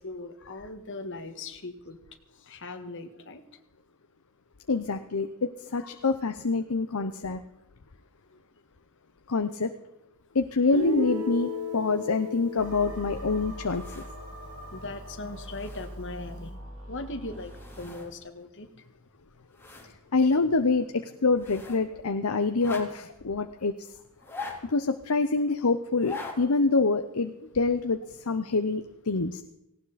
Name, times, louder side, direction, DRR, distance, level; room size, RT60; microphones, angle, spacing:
voice 1, 0.0-2.0 2.4-3.4 5.8-6.0 6.9-7.1 14.7-17.5 17.8-18.7 23.4-23.6, left 2 dB, 60° left, 6 dB, 1.7 m, -39 dB
voice 2, 4.7-7.4 9.3-9.7 10.3-14.0 20.1-23.7 24.7-28.0 28.3-29.4, left 3 dB, 80° left, 8 dB, 0.8 m, -26 dB
Guitar, 10.7-14.7, left 1 dB, 80° right, 1.9 m, -35 dB
sound 1, 12.6-17.9, equal, 65° right, 3.8 m, -42 dB
sound 2, 13.6-14.3 14.8-14.9 15.2-16.2 17.2-18.1 18.4-18.5 19.0-19.9 20.2-20.3 21.3-21.9 22.5-23.2 24.1-24.9 25.8-26.4 26.7-26.8, left 3 dB, 10° left, 3.6 m, -43 dB
18.5 x 17.5 x 4.2 m, 0.87 s
head